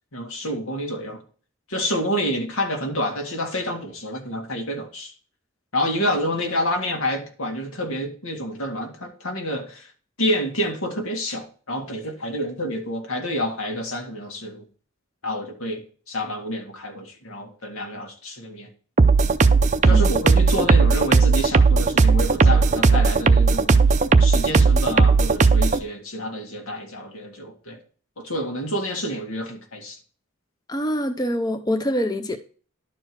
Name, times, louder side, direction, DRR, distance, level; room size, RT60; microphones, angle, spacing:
voice 1, 0.1-1.2 1.7-5.1 5.7-9.9 10.2-14.7 15.2-18.7 19.8-23.8 24.2-27.8 28.2-30.0, equal, 85° left, 2.0 m, -28 dB
sound 1, 19.0-25.8, right 4 dB, 35° right, 0.5 m, -16 dB
voice 2, 30.7-32.4, equal, 20° left, 0.5 m, -25 dB
11.5 x 4.6 x 4.5 m
head